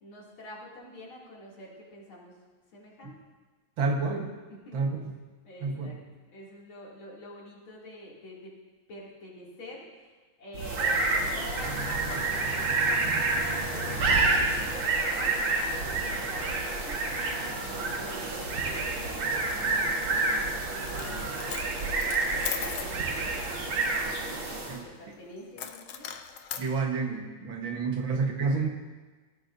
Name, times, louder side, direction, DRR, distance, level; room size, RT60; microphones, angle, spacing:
voice 1, 0.0-2.4 2.7-3.1 4.5-4.9 5.4-6.0 6.3-8.5 8.9-21.6 21.9-26.1, left 1 dB, 90° left, -5 dB, 3.6 m, -47 dB
voice 2, 3.8-4.3 4.7-5.0 5.6-6.0 24.7-24.9 26.6-28.7, right 4 dB, 75° right, 2 dB, 2.1 m, -29 dB
sound 1, 10.5-24.8, right 3 dB, 90° right, 2.5 m, -29 dB
Coin (dropping), 20.8-21.1 21.4-22.9 25.6-26.7, left 8 dB, 65° left, 1.2 m, -37 dB
18.0 x 14.5 x 2.7 m, 1.3 s
omnidirectional pair, 2.2 m